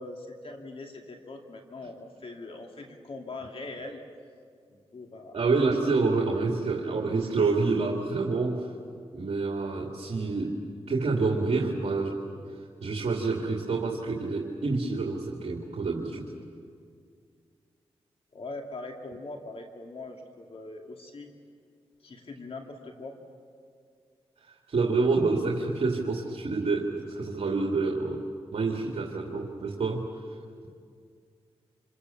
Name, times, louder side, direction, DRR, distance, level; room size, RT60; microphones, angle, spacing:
voice 1, 0.0-4.0 4.7-5.4 6.2-6.3 18.3-21.3 22.0-23.1, left 2 dB, 60° left, 2 dB, 2.4 m, -41 dB
voice 2, 5.3-8.7 9.1-10.6 10.9-12.2 12.8-16.3 24.4-28.2 28.5-30.1, right 3 dB, 65° right, -1 dB, 2.6 m, -27 dB
27.5 x 27.0 x 7.2 m, 2.2 s
cardioid pair, 70°, 11 cm